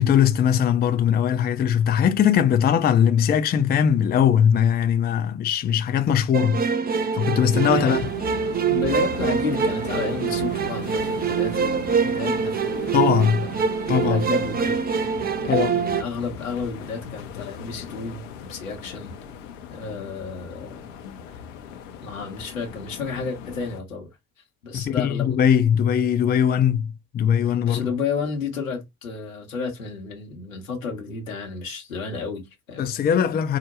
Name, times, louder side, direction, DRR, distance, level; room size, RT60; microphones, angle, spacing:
voice 1, 0.0-6.6 7.1-8.0 12.9-13.5 13.9-14.2 15.5-15.7 24.7-26.9 27.1-27.8 32.8-33.6, left 8 dB, 25° left, 0.5 m, -20 dB
sound 1, 6.3-16.0, right 6 dB, 25° right, 0.5 m, -24 dB
voice 2, 7.6-8.4 8.7-13.6 14.0-14.8 15.4-19.1 19.7-20.9 21.3-21.4 22.0-24.1 24.6-25.4 27.4-32.9, left 5 dB, 85° left, 1.0 m, -32 dB
sound 2, 7.6-23.8, left 7 dB, 70° left, 0.7 m, -39 dB
4.8 x 2.1 x 2.9 m
figure-of-eight pair, 55°, 39 cm